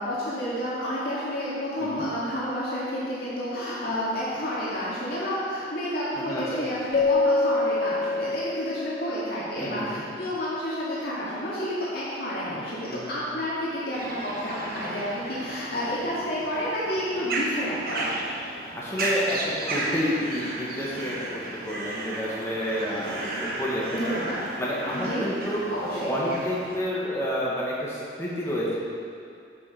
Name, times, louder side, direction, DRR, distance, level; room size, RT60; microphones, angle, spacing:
voice 1, 0.0-18.3 23.0-23.4 23.9-24.3 24.9-25.2 25.7-26.1, equal, 60° left, -9 dB, 2.1 m, -30 dB
Keyboard (musical), 6.9-9.4, left 3 dB, 35° left, 0.5 m, -25 dB
voice 2, 9.6-10.0 12.9-13.1 18.7-24.2 24.6-25.6 25.9-28.8, equal, 15° left, -6 dB, 1.5 m, -30 dB
sound 1, 13.9-26.8, right 2 dB, 55° right, 1.0 m, -34 dB
9.7 x 6.5 x 4.9 m, 2.4 s
head